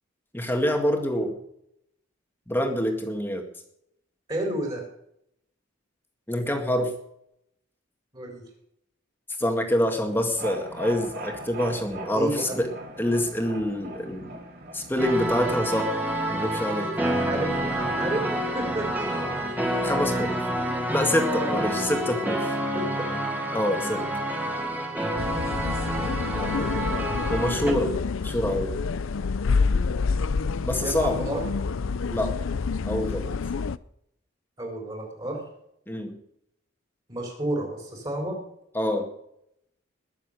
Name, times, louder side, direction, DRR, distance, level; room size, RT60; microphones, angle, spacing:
voice 1, 0.3-1.4 2.5-3.5 6.3-6.9 9.4-12.7 13.0-14.4 14.7-15.9 16.3-16.9 19.8-20.4 20.9-22.6 23.5-24.1 27.3-27.9 28.2-28.8 30.6-31.3 32.1-32.4 32.8-33.3 35.9-36.2 38.7-39.1, left 1 dB, 10° left, 3 dB, 2.0 m, -26 dB
voice 2, 4.3-4.8 8.1-8.4 12.1-12.7 17.0-18.9 21.4-21.6 22.7-23.1 30.8-31.4 34.6-35.4 37.1-38.4, right 1 dB, 25° right, 0 dB, 3.9 m, -31 dB
sound 1, 10.1-16.2, right 1 dB, 50° right, 3.2 m, -40 dB
sound 2, 15.0-27.7, right 1 dB, 10° right, 2.3 m, -28 dB
sound 3, 25.2-33.8, left 4 dB, 75° left, 0.5 m, -28 dB
21.0 x 7.2 x 6.6 m, 0.76 s
head